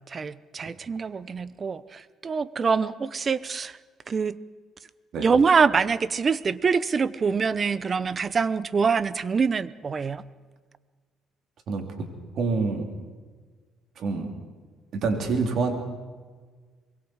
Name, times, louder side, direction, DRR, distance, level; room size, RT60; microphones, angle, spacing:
voice 1, 0.1-3.8 4.1-4.4 5.2-10.2, right 5 dB, 35° right, 17 dB, 0.8 m, -25 dB
voice 2, 11.7-12.1 12.3-12.9 14.0-14.3 14.9-15.7, right 4 dB, 60° right, 3 dB, 4.0 m, -26 dB
25.0 x 22.0 x 4.9 m, 1.5 s
cardioid pair, 95°, 0 cm